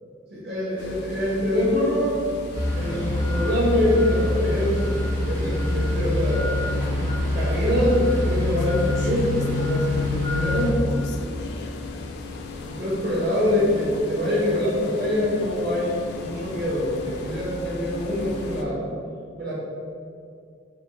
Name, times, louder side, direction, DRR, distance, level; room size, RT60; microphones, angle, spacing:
voice 1, 0.3-2.2 2.7-4.8 5.3-6.5 7.3-10.8 12.7-18.8 19.4-19.5, left 1 dB, 60° right, -8 dB, 1.3 m, -24 dB
sound 1, 0.8-18.7, left 2 dB, 60° left, 0.3 m, -37 dB
sound 2, 2.5-10.7, left 2 dB, 80° right, 1.5 m, -25 dB
3.6 x 2.4 x 3.8 m, 2.3 s
head